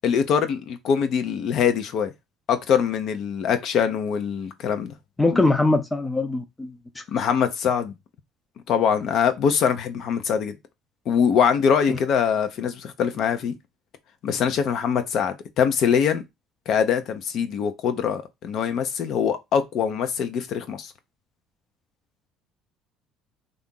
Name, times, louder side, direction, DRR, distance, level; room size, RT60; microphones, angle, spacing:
voice 1, 0.0-2.1 2.5-4.9 5.3-5.4 7.1-7.9 8.7-10.5 11.1-13.5 14.2-16.2 16.7-20.9, left 7 dB, 55° left, 0.6 m, -23 dB
voice 2, 5.2-6.7 11.9-12.0, left 2 dB, 10° left, 0.4 m, -21 dB
2.8 x 2.5 x 3.6 m
cardioid pair, 110°, 0 cm